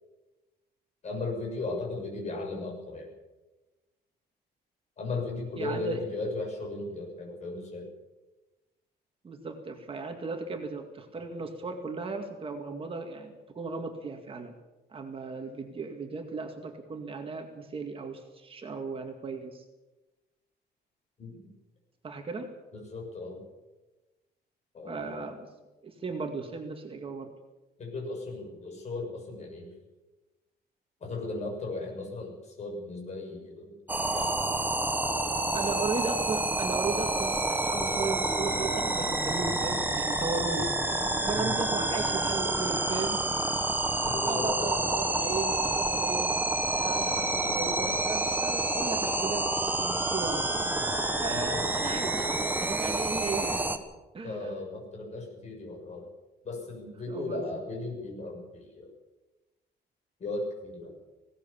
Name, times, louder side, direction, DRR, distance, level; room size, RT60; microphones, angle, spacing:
voice 1, 1.0-3.1 5.0-7.9 21.2-21.4 22.7-23.4 24.7-25.2 27.8-29.7 31.0-33.8 34.1-34.3 35.6-35.8 41.3-41.5 44.0-44.8 51.3-51.6 51.9-52.1 54.2-56.1 56.4-58.9 60.2-60.9, left 3 dB, 40° left, 1 dB, 7.1 m, -36 dB
voice 2, 5.6-6.0 9.2-14.5 14.9-19.6 22.0-22.5 24.8-25.5 25.8-27.3 35.5-43.3 43.9-46.3 46.7-50.5 51.2-53.7 54.1-54.6 57.1-57.5, right 4 dB, 30° right, 4 dB, 2.1 m, -36 dB
sound 1, 33.9-53.8, right 2 dB, 10° right, 1.4 m, -28 dB
20.0 x 18.0 x 7.2 m, 1.1 s
cardioid pair, 155°, 18 cm